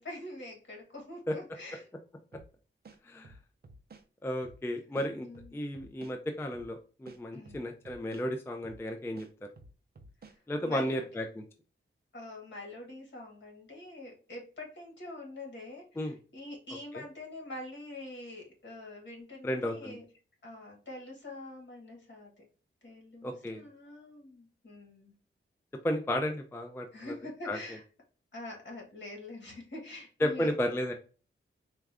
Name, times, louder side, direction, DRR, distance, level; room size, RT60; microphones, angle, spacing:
voice 1, 0.0-1.9 5.2-5.6 7.3-7.6 10.3-11.0 12.1-20.0 20.4-22.3 22.8-25.1 26.9-27.8 28.3-30.5, left 1 dB, 55° left, 0 dB, 1.5 m, -45 dB
sound 1, 2.3-2.5 2.8-4.1 4.4-4.6 5.0-6.2 6.5-6.7 7.1-8.3 8.6-8.8 9.2-10.4, right 2 dB, 50° right, 0.5 m, -53 dB
voice 2, 4.2-9.3 10.5-11.4 16.0-16.2 16.9-17.0 19.4-20.0 23.2-23.6 25.8-27.1 27.5-27.6 30.2-30.9, equal, 10° left, 5 dB, 0.4 m, -33 dB
4.3 x 2.4 x 3.4 m, 0.38 s
wide cardioid pair, 135°, 21 cm